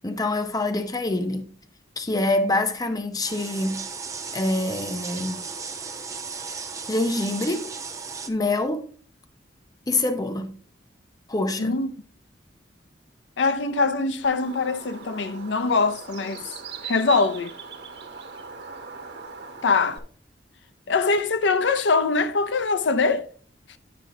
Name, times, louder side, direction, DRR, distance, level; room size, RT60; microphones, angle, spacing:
voice 1, 0.0-1.5 2.0-3.8 4.3-5.4 6.9-7.7 8.3-8.9 9.9-10.5 11.3-11.7, left 2 dB, 20° left, 0.7 m, -25 dB
sound 1, 3.2-8.3, right 5 dB, 20° right, 0.6 m, -35 dB
voice 2, 11.6-11.9 13.4-16.4 16.8-17.6 19.6-20.0 20.9-23.3, left 4 dB, 90° left, 0.6 m, -23 dB
Bird, 14.2-20.0, right 5 dB, 65° right, 1.2 m, -40 dB
9.4 x 5.3 x 3.7 m
head